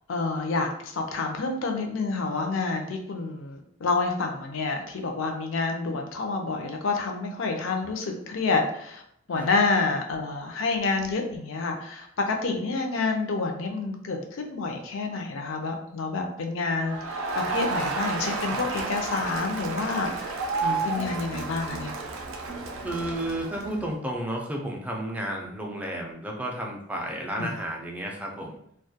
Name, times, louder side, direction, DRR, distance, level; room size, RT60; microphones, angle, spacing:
voice 1, 0.1-9.0 9.3-21.9 27.4-27.5, left 3 dB, 70° left, 3 dB, 0.4 m, -28 dB
Crowd, 16.8-23.9, right 3 dB, 85° right, 0.4 m, -31 dB
voice 2, 22.8-28.5, right 1 dB, 5° right, -1 dB, 0.3 m, -32 dB
2.2 x 2.1 x 2.7 m, 0.71 s
head